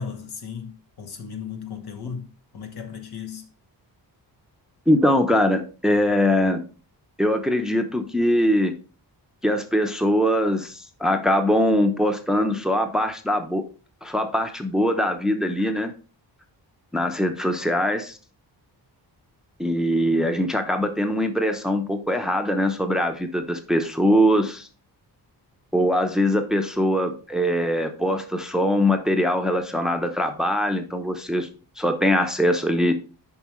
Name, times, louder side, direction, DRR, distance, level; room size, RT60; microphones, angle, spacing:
voice 1, 0.0-3.4, left 6 dB, 65° left, 1.3 m, -36 dB
voice 2, 4.9-6.6 7.2-8.8 9.4-13.6 14.0-15.9 16.9-18.2 19.6-24.7 25.7-31.5 31.8-33.0, equal, ahead, 0.8 m, -22 dB
7.3 x 5.0 x 3.1 m
wide cardioid pair, 95°, 41 cm